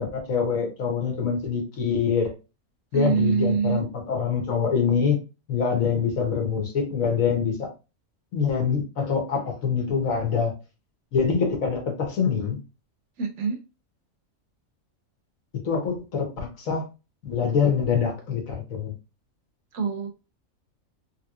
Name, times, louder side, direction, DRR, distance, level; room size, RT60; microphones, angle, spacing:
voice 1, 0.0-2.3 2.9-5.2 5.5-7.7 8.3-10.5 11.1-12.6 15.6-16.8 17.2-18.9, left 6 dB, 80° left, 2 dB, 1.5 m, -25 dB
voice 2, 2.9-3.8 13.2-13.6 19.7-20.1, right 6 dB, 65° right, 4 dB, 0.9 m, -24 dB
3.4 x 3.0 x 2.3 m, 0.29 s
omnidirectional pair, 1.4 m